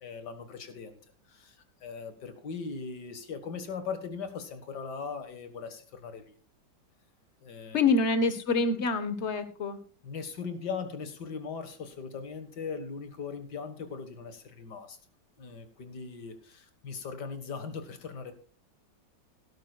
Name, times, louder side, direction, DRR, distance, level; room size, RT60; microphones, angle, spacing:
voice 1, 0.0-1.0 1.3-6.3 7.4-7.8 10.0-15.0 15.4-18.3, left 5 dB, 70° left, 8 dB, 2.2 m, -39 dB
voice 2, 7.7-9.8, left 3 dB, 40° left, 10 dB, 1.4 m, -26 dB
16.5 x 12.5 x 2.4 m, 0.40 s
omnidirectional pair, 1.9 m